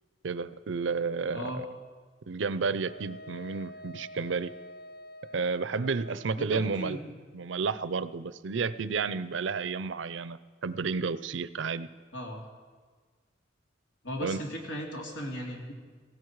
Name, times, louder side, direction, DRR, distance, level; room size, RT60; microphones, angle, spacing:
voice 1, 0.2-1.7 2.3-4.5 5.3-7.0 7.3-11.9 14.2-14.4, right 4 dB, 85° right, 15 dB, 0.6 m, -31 dB
Wind instrument woodwind instrument, 2.8-6.4, equal, 50° left, 0.6 m, -47 dB
voice 2, 6.4-7.0 12.1-12.4 14.0-15.7, equal, 90° left, 0 dB, 3.0 m, -37 dB
17.5 x 16.0 x 4.7 m, 1.5 s
head